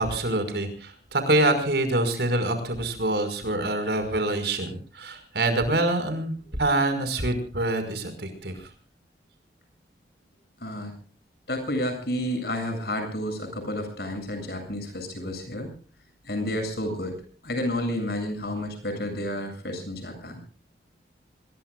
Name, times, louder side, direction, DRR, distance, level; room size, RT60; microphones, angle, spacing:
voice 1, 0.0-8.7, right 2 dB, 65° right, 8 dB, 5.5 m, -25 dB
voice 2, 10.6-10.9 11.5-15.7 16.2-17.2 17.4-20.4, left 1 dB, 60° left, 6 dB, 7.8 m, -30 dB
26.5 x 22.0 x 2.4 m, 0.41 s
head